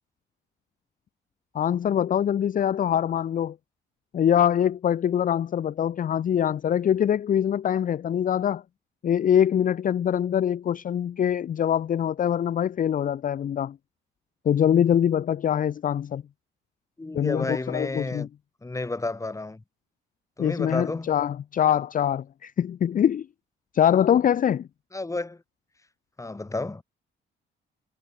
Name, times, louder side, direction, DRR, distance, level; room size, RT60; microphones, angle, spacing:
voice 1, 1.5-3.6 4.1-8.6 9.0-13.8 14.5-16.2 17.1-18.3 20.4-23.3 23.7-24.7, left 9 dB, 45° left, 0.5 m, -23 dB
voice 2, 17.0-18.3 18.6-19.6 20.4-21.1 24.9-25.4 26.2-26.8, left 2 dB, 15° left, 2.0 m, -31 dB
cardioid pair, 90°, 20 cm